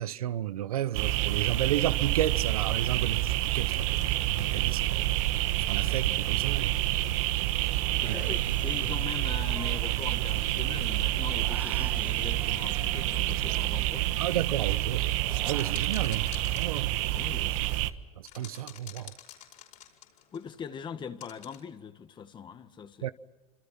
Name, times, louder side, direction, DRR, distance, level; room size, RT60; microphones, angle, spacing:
voice 1, 0.0-4.0 4.4-5.1 5.6-7.0 8.1-8.2 14.2-16.9 18.2-19.1 23.0-23.1, right 12 dB, 90° right, 1.0 m, -32 dB
sound 1, 0.9-17.9, right 15 dB, 65° right, 1.4 m, -28 dB
sound 2, 3.4-21.6, left 11 dB, 45° left, 5.1 m, -54 dB
Human voice, 7.9-10.6 10.8-14.3 14.7-15.8, right 2 dB, 10° right, 2.1 m, -48 dB
voice 2, 8.0-14.2 17.1-17.6 20.3-23.1, left 7 dB, 25° left, 1.7 m, -41 dB
27.0 x 26.0 x 5.9 m
supercardioid pair, 120°, 18 cm